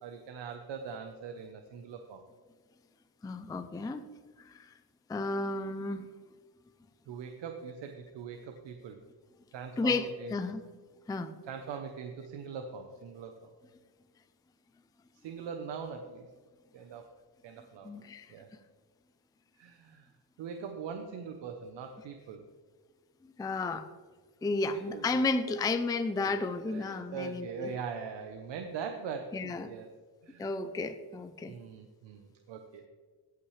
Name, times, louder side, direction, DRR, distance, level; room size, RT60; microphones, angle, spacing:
voice 1, 0.0-2.2 7.1-9.0 9.5-10.4 11.5-13.5 15.1-16.3 16.7-17.0 17.4-17.9 18.3-18.5 19.6-20.1 20.4-22.4 24.7-25.1 26.7-30.5 31.5-32.9, right 6 dB, 80° right, 5 dB, 0.9 m, -42 dB
voice 2, 3.2-4.0 4.4-4.7 5.1-6.1 9.8-10.6 11.1-11.3 17.8-18.3 23.2-23.9 24.4-27.7 29.3-29.7 30.4-31.6, left 3 dB, 10° left, 9 dB, 0.4 m, -32 dB
17.0 x 5.8 x 3.2 m, 1.5 s
cardioid pair, 115°, 43 cm